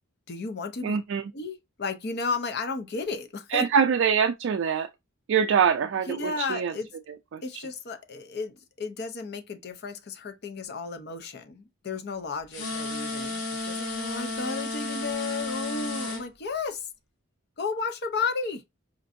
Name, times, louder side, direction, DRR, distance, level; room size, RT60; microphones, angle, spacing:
voice 1, 0.3-1.0 1.3-3.7 6.1-6.9 7.4-16.9 17.6-18.6, left 4 dB, 50° left, 0.6 m, -33 dB
voice 2, 0.8-1.2 3.5-4.9 5.3-6.7 7.3-7.4, right 7 dB, 60° right, 0.3 m, -24 dB
sound 1, 12.5-16.2, left 3 dB, 80° left, 1.2 m, -32 dB
4.4 x 2.5 x 2.5 m
head